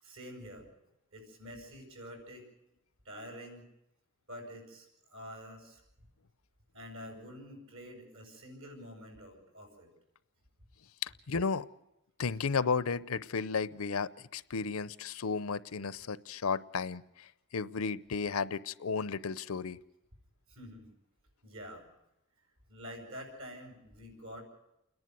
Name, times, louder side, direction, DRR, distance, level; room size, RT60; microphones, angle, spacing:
voice 1, 0.0-0.7 1.1-2.5 3.0-3.6 4.3-6.1 6.7-9.9 20.5-20.9 21.4-21.8 22.7-24.4, equal, 75° right, 3 dB, 7.3 m, -47 dB
voice 2, 11.0-11.7 12.2-19.8, left 5 dB, 85° left, 17 dB, 0.7 m, -33 dB
29.0 x 11.0 x 9.4 m, 0.87 s
head